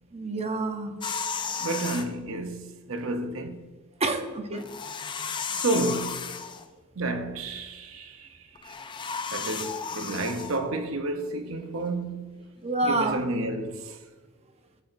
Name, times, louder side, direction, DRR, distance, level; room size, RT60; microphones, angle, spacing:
voice 1, 0.1-0.9 4.0-4.7 12.6-13.2, right 2 dB, 30° right, 0.8 m, -27 dB
sound 1, 1.0-2.1 4.5-6.7 8.5-10.6, left 6 dB, 20° left, 0.5 m, -34 dB
voice 2, 1.6-3.6 5.5-6.3 6.9-8.8 9.3-12.3 12.8-14.0, right 2 dB, 70° right, 0.8 m, -31 dB
15.0 x 7.8 x 2.6 m
head